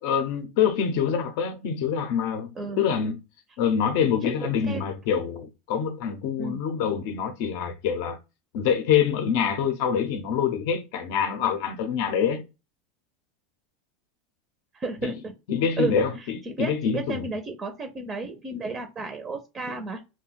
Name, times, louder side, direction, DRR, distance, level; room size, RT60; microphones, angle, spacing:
voice 1, 0.0-2.5 2.8-3.2 3.6-8.2 8.5-12.4 15.0-15.1 15.5-17.3, left 7 dB, 60° left, 0.6 m, -25 dB
voice 2, 4.3-4.9 6.4-6.6 14.7-15.3 15.8-20.0, right 3 dB, 20° right, 0.5 m, -33 dB
2.5 x 2.1 x 3.8 m
supercardioid pair, 145°, 0 cm